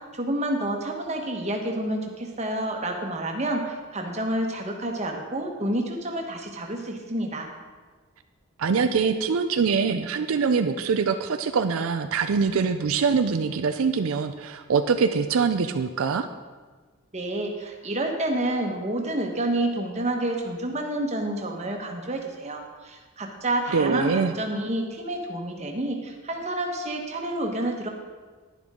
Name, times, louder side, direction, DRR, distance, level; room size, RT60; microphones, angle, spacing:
voice 1, 0.0-7.5 17.1-27.9, right 1 dB, 30° right, 2 dB, 1.2 m, -29 dB
voice 2, 8.6-16.3 23.7-24.3, right 5 dB, 80° right, 8 dB, 0.5 m, -24 dB
11.0 x 10.5 x 3.7 m, 1.4 s
head